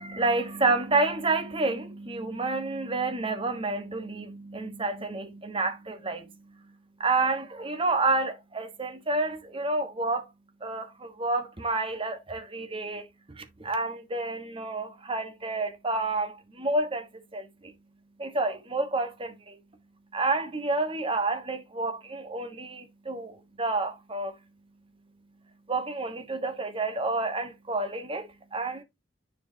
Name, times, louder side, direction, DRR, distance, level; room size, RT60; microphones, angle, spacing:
voice 1, 0.0-6.4 7.0-10.2 10.6-13.0 13.4-17.7 18.2-19.6 20.1-24.3 25.7-28.8, right 3 dB, 30° right, 1.2 m, -29 dB
10.0 x 4.6 x 2.7 m
head